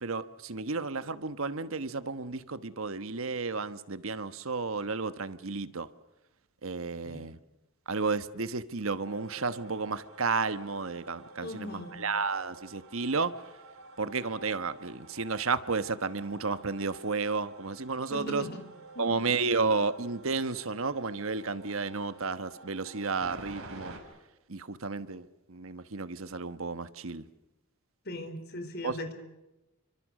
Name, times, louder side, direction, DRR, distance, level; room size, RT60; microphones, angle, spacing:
voice 1, 0.0-5.9 6.6-7.4 7.9-13.3 14.0-18.4 19.0-23.9 24.5-27.2 28.8-29.0, right 4 dB, 75° right, 13 dB, 1.2 m, -32 dB
sound 1, 9.0-24.0, right 3 dB, 90° right, 6.6 m, -50 dB
voice 2, 11.4-12.0 18.1-18.6 18.9-19.2 28.0-29.1, left 1 dB, 50° left, 8 dB, 4.2 m, -39 dB
28.5 x 25.0 x 6.5 m, 1.0 s
head